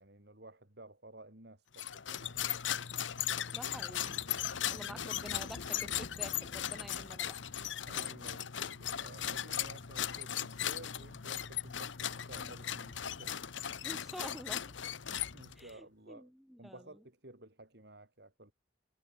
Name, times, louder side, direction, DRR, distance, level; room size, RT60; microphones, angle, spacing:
voice 1, 0.0-2.4 4.7-5.2 7.8-13.4 15.1-16.3 16.6-18.5, right 2 dB, 60° right, 4.3 m, -54 dB
sound 1, 1.7-15.7, left 10 dB, 80° left, 1.0 m, -38 dB
voice 2, 3.5-4.2 4.7-7.4 13.8-14.8 15.6-17.0, equal, ahead, 0.7 m, -49 dB
head